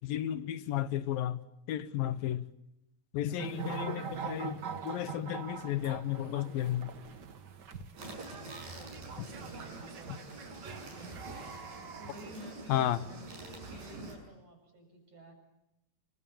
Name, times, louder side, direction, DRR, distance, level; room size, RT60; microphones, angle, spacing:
voice 1, 0.0-1.4 1.7-2.4 3.1-6.9 12.7-13.0, left 12 dB, 70° left, 2.8 m, -33 dB
voice 2, 3.3-3.9 8.4-11.1 11.9-15.3, right 1 dB, 40° right, 8.4 m, -53 dB
sound 1, 3.4-12.3, right 6 dB, 90° right, 0.9 m, -43 dB
sound 2, 8.0-14.2, right 2 dB, 65° right, 8.7 m, -46 dB
29.5 x 25.5 x 7.2 m
omnidirectional pair, 4.4 m